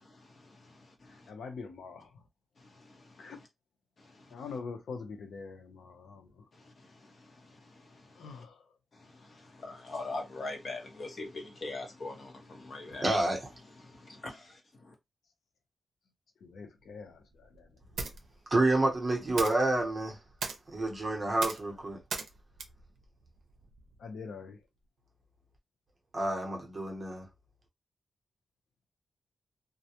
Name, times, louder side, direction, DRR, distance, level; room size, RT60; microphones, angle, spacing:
voice 1, 1.3-2.1 3.2-3.4 4.3-6.2 8.2-8.5 16.4-17.2 24.0-24.6, left 5 dB, 85° left, 0.7 m, -43 dB
voice 2, 9.6-13.0 13.8-14.5, left 2 dB, 40° left, 0.8 m, -40 dB
voice 3, 13.0-13.5 18.5-20.2 20.7-22.0 26.1-27.3, right 2 dB, 25° right, 0.7 m, -28 dB
sound 1, 16.8-24.0, right 4 dB, 85° right, 0.5 m, -42 dB
2.3 x 2.1 x 2.8 m
wide cardioid pair, 180°, 0 cm